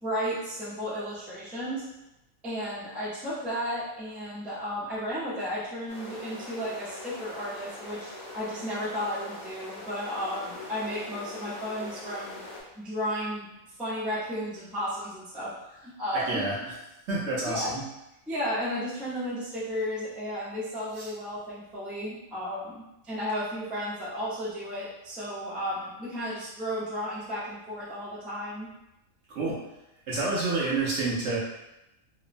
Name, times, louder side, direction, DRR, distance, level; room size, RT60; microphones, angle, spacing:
voice 1, 0.0-1.8 2.4-12.4 12.8-13.5 13.8-16.4 17.4-17.7 18.3-28.7, equal, ahead, -10 dB, 0.5 m, -33 dB
sound 1, 5.9-12.6, left 1 dB, 60° left, 1.1 m, -42 dB
voice 2, 16.1-16.6 17.1-17.8 21.0-21.1 29.3-29.5 30.1-31.4, right 3 dB, 65° right, -6 dB, 0.8 m, -28 dB
2.9 x 2.0 x 2.5 m, 0.93 s
omnidirectional pair, 1.5 m